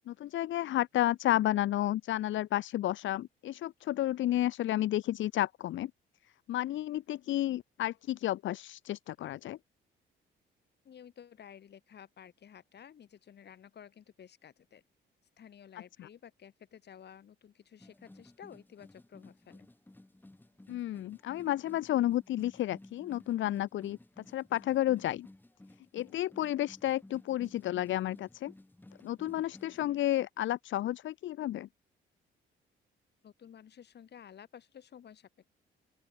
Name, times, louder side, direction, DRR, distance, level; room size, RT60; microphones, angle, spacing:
voice 1, 0.1-5.9 6.5-9.6 16.0-16.1 20.7-25.3 25.9-28.5 29.0-31.7, left 13 dB, 75° left, 0.9 m, -31 dB
voice 2, 10.8-14.8 15.4-19.7 33.2-35.5, left 8 dB, 60° left, 5.0 m, -53 dB
sound 1, 17.8-29.9, left 1 dB, 10° left, 2.2 m, -56 dB
open air
cardioid pair, 90°, 20 cm